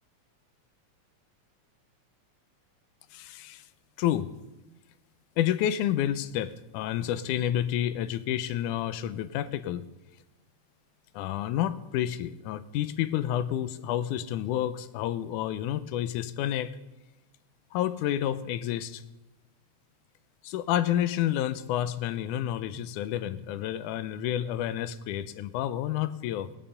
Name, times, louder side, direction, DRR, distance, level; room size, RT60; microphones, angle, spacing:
voice 1, 3.1-3.6 4.0-4.3 5.4-9.9 11.1-16.8 17.7-19.0 20.4-26.5, left 11 dB, 85° left, 13 dB, 2.1 m, -29 dB
18.0 x 11.0 x 5.6 m, 1.0 s
omnidirectional pair, 3.5 m